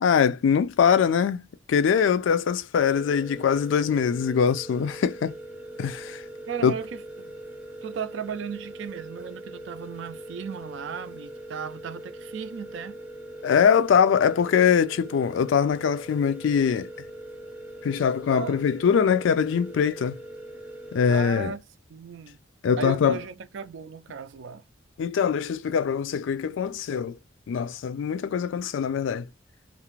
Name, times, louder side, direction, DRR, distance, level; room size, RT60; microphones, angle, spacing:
voice 1, 0.0-5.4 5.8-6.2 6.6-6.7 13.4-16.9 17.8-20.2 20.9-21.5 22.6-23.2 25.0-27.2 27.5-29.3, left 7 dB, 80° left, 0.3 m, -23 dB
sound 1, 2.9-21.4, right 1 dB, 5° right, 0.5 m, -42 dB
voice 2, 6.5-7.3 7.8-13.0 18.3-18.6 21.1-21.6 21.9-22.4 22.8-24.6, right 6 dB, 75° right, 0.4 m, -36 dB
2.4 x 2.0 x 3.0 m
head